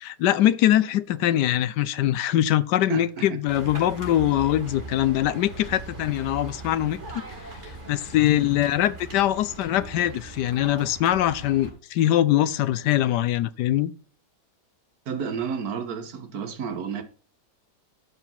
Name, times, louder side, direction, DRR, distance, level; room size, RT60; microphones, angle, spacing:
voice 1, 0.0-7.0 7.9-13.9, left 12 dB, 85° left, 1.2 m, -22 dB
voice 2, 2.9-3.4 15.0-17.0, right 6 dB, 60° right, 1.6 m, -31 dB
sound 1, 3.5-11.7, right 2 dB, 40° right, 3.6 m, -40 dB
12.0 x 4.8 x 5.6 m
omnidirectional pair, 1.8 m